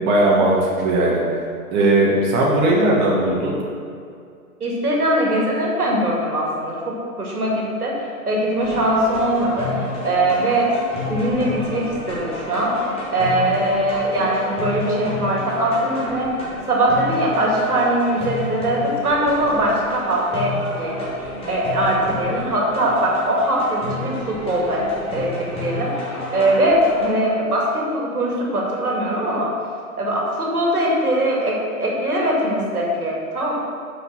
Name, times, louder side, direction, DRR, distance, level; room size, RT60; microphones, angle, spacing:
voice 1, 0.0-1.4 1.7-3.6, right 2 dB, 30° right, -4 dB, 1.5 m, -18 dB
voice 2, 4.6-7.9 8.3-10.7 11.1-12.7 13.1-16.3 16.7-21.1 21.5-29.5 30.0-33.5, right 1 dB, 75° right, -3 dB, 2.2 m, -21 dB
sound 1, 8.6-27.1, left 2 dB, 10° left, 1.5 m, -31 dB
6.3 x 5.7 x 6.2 m, 2.3 s
figure-of-eight pair, 115°, 45 cm